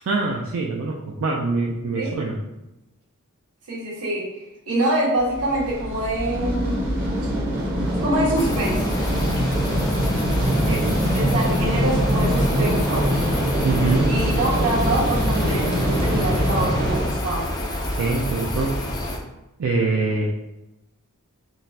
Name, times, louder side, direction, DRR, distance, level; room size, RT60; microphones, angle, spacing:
voice 1, 0.1-2.4 10.5-11.0 13.6-14.1 17.9-19.0 19.6-20.3, right 3 dB, 60° right, -1 dB, 0.4 m, -24 dB
voice 2, 3.7-4.3 4.7-6.8 8.0-9.0 11.1-13.0 14.1-17.5 20.1-20.2, right 1 dB, 85° right, -7 dB, 1.4 m, -25 dB
sound 1, 5.2-17.1, equal, 45° right, 0.8 m, -23 dB
sound 2, 8.4-19.2, left 1 dB, 20° left, 0.4 m, -28 dB
3.8 x 2.4 x 2.7 m, 0.94 s
head